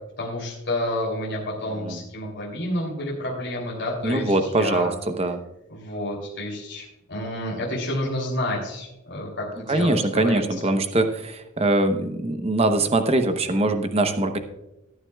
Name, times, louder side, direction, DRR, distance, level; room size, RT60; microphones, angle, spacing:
voice 1, 0.2-4.9 5.7-10.7, left 1 dB, 55° left, -4 dB, 3.1 m, -30 dB
voice 2, 4.0-5.4 9.7-14.4, right 2 dB, 25° right, 7 dB, 0.8 m, -22 dB
18.0 x 9.5 x 2.3 m, 0.94 s
head